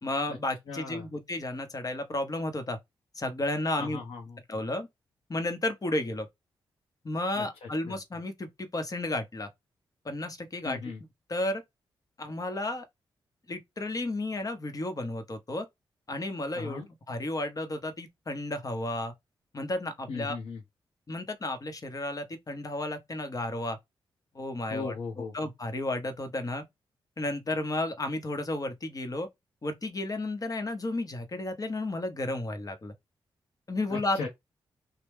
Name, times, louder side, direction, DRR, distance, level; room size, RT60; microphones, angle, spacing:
voice 1, 0.0-2.8 3.1-4.0 4.5-4.9 5.3-6.3 7.0-9.5 10.0-10.8 11.3-11.6 12.2-12.8 13.5-15.7 16.1-19.1 19.5-20.3 21.1-23.8 24.3-24.9 25.3-26.6 27.2-29.3 29.6-32.9 33.7-34.3, left 2 dB, 40° left, 1.0 m, -32 dB
voice 2, 0.7-1.1 3.8-4.4 7.3-8.0 10.6-11.0 16.5-16.9 20.1-20.6 24.7-25.3 33.9-34.3, left 4 dB, 85° left, 0.9 m, -37 dB
3.1 x 2.2 x 3.4 m
cardioid pair, 60°, 10 cm